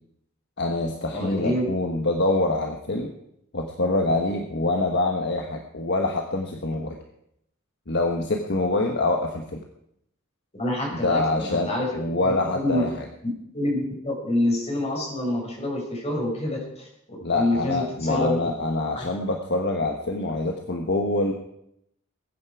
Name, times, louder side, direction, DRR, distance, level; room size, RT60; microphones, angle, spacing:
voice 1, 0.6-3.1 3.5-7.0 7.9-9.6 11.0-13.1 17.2-21.3, left 2 dB, 55° left, 3 dB, 1.3 m, -25 dB
voice 2, 1.1-1.7 10.5-11.9 12.2-12.8 13.5-16.9 17.3-18.4 18.9-19.1, left 1 dB, 30° left, -1 dB, 5.4 m, -27 dB
21.5 x 9.7 x 4.8 m, 0.76 s
head